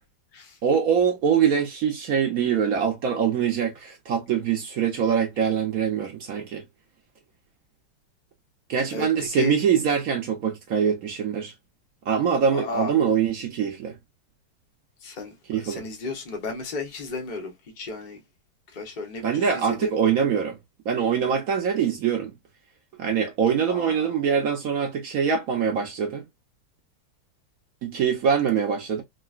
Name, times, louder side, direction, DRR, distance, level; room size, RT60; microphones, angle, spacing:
voice 1, 0.6-6.6 8.7-11.5 12.1-14.0 15.5-15.9 19.2-20.6 20.9-22.3 23.0-26.2 27.8-29.0, right 7 dB, 70° right, 0.8 m, -23 dB
voice 2, 8.9-9.5 12.5-12.9 15.0-18.2 18.7-20.0 23.7-24.3, left 4 dB, 80° left, 0.4 m, -34 dB
3.8 x 2.1 x 2.3 m
omnidirectional pair, 2.3 m